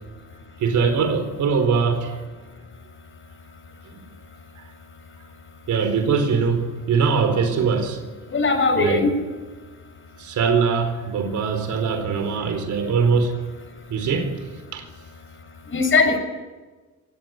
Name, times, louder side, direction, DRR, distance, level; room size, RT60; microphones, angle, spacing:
voice 1, 0.6-2.2 5.7-8.0 8.8-9.1 10.2-13.3 13.9-14.4 14.7-14.9, right 5 dB, 70° right, 4.2 m, -22 dB
voice 2, 8.3-9.1 15.7-16.2, left 3 dB, 40° left, 7.0 m, -19 dB
24.0 x 19.0 x 9.4 m
cardioid pair, 90°, 30 cm